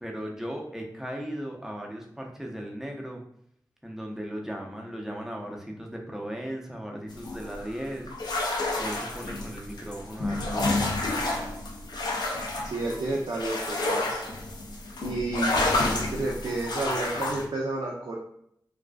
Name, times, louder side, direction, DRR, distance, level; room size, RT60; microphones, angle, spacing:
voice 1, 0.0-3.2 3.8-8.1 8.8-10.9 15.7-16.0, equal, 5° right, 0 dB, 0.5 m, -37 dB
sound 1, 7.1-17.4, left 2 dB, 70° left, 0.4 m, -30 dB
voice 2, 12.6-14.2 15.0-18.2, right 2 dB, 85° right, -3 dB, 0.4 m, -31 dB
2.4 x 2.3 x 2.2 m, 0.70 s
wide cardioid pair, 65°, 7 cm